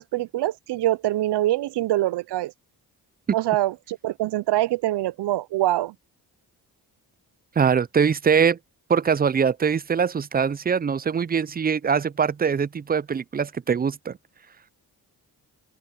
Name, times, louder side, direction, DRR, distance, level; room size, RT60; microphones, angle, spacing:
voice 1, 0.0-2.5 3.3-5.9, right 15 dB, 90° right, 0.5 m, -24 dB
voice 2, 7.6-8.6 8.9-14.2, right 6 dB, 25° right, 0.3 m, -22 dB
open air
cardioid pair, 70°, 40 cm